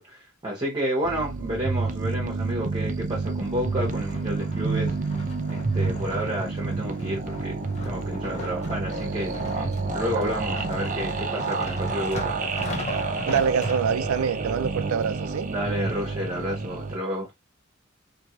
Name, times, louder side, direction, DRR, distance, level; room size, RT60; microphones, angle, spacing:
voice 1, 0.0-4.9 5.4-12.4 15.5-17.3, equal, 20° right, 1.1 m, -31 dB
sound 1, 1.0-17.0, right 4 dB, 40° right, 0.6 m, -29 dB
sound 2, 3.3-14.3 14.9-15.0, left 3 dB, 35° left, 1.0 m, -38 dB
voice 2, 13.3-15.5, right 7 dB, 90° right, 0.4 m, -25 dB
4.5 x 2.8 x 3.0 m
head